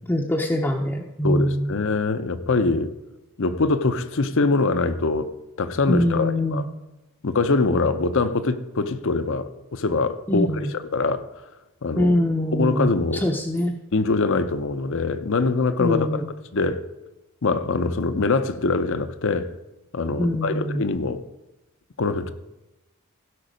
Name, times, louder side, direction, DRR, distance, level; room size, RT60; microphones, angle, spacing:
voice 1, 0.1-1.7 5.9-6.7 10.3-10.7 12.0-13.7 15.8-16.3 20.2-20.8, equal, 10° left, -1 dB, 0.6 m, -23 dB
voice 2, 1.2-2.9 3.4-5.3 5.6-6.6 7.2-11.2 11.8-12.1 12.5-13.2 13.9-16.2 16.5-16.8 17.4-19.5 19.9-21.2 22.0-22.3, left 3 dB, 60° left, 11 dB, 0.7 m, -23 dB
16.0 x 5.5 x 5.1 m, 1.0 s
head